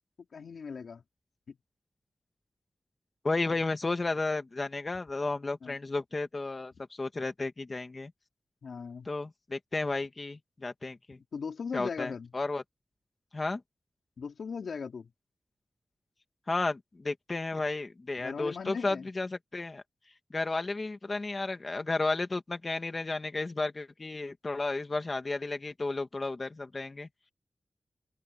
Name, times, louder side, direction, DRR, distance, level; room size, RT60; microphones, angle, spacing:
voice 1, 0.3-1.0 1.5-1.6 5.6-5.8 8.6-9.1 11.3-12.3 14.2-15.1 18.2-19.1, left 5 dB, 85° left, 3.6 m, -38 dB
voice 2, 3.2-8.1 9.1-11.2 11.7-12.6 13.3-13.6 16.5-19.8 20.3-27.1, left 3 dB, 35° left, 2.2 m, -33 dB
open air
wide cardioid pair, 145°, 0 cm